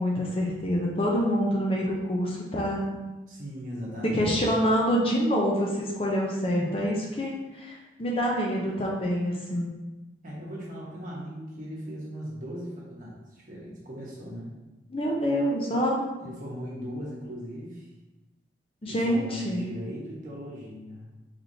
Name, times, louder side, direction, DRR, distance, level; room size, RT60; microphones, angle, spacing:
voice 1, 0.0-2.9 4.0-9.7 14.9-16.0 18.8-19.6, equal, 30° left, -2 dB, 0.5 m, -26 dB
voice 2, 3.3-4.3 10.2-14.5 16.2-17.9 18.9-21.1, equal, 45° right, -5 dB, 1.1 m, -38 dB
4.1 x 3.3 x 2.7 m, 1.1 s
head